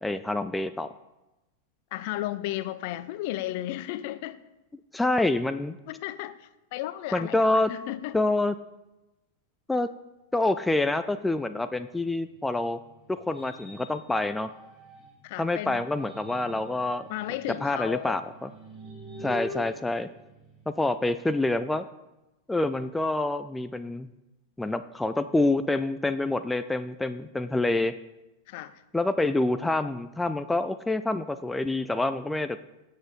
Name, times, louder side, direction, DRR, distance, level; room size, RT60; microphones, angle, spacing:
voice 1, 0.0-0.9 4.9-5.8 7.1-7.7 8.1-8.5 9.7-9.9 10.3-12.8 13.1-14.5 15.4-17.1 17.6-18.5 19.2-20.1 20.8-21.9 22.5-24.1 24.6-28.0 28.9-32.6, left 2 dB, 5° left, 0.4 m, -27 dB
voice 2, 1.9-4.4 5.9-8.2 15.2-15.8 17.1-18.2 28.5-28.8, left 14 dB, 50° left, 0.6 m, -34 dB
sound 1, 12.1-15.3 15.8-21.0, right 1 dB, 15° right, 3.1 m, -44 dB
15.5 x 7.1 x 3.9 m
figure-of-eight pair, 90°, 0 cm